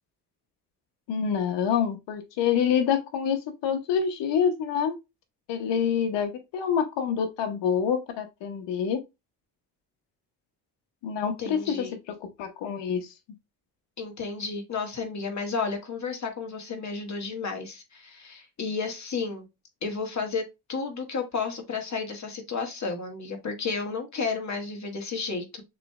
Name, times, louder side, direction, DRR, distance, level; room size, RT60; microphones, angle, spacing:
voice 1, 1.1-5.0 5.5-9.0 11.0-13.1, left 7 dB, 85° left, 0.9 m, -27 dB
voice 2, 11.4-11.9 14.0-19.5 19.8-25.6, left 4 dB, 40° left, 1.8 m, -32 dB
6.6 x 3.1 x 2.3 m
cardioid pair, 75°, 42 cm